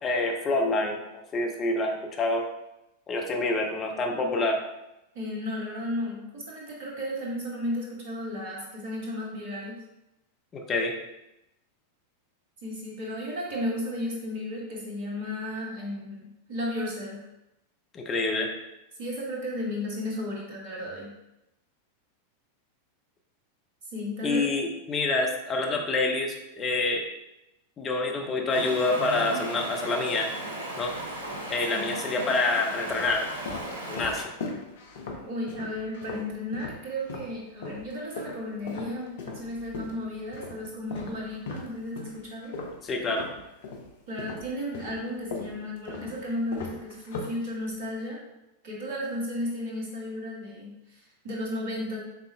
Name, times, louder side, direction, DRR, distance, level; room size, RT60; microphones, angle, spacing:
voice 1, 0.0-2.4 3.1-4.6 10.5-10.9 17.9-18.5 24.2-27.0 27.8-30.3 30.8-30.9 31.5-33.3 33.9-34.2 42.8-43.3, left 2 dB, 25° left, 2 dB, 0.7 m, -27 dB
voice 2, 5.1-9.8 12.6-17.2 19.0-21.1 23.9-24.4 31.7-31.9 35.2-42.5 44.1-48.2 48.6-52.0, left 1 dB, 50° right, -3 dB, 1.4 m, -34 dB
Stream, 28.5-34.2, right 1 dB, 70° right, 0.8 m, -36 dB
sound 1, 30.9-31.5 32.2-37.3 37.6-43.9 44.2-47.9, left 3 dB, 60° left, 0.7 m, -39 dB
5.7 x 3.4 x 2.3 m, 0.91 s
figure-of-eight pair, 90°, 0 cm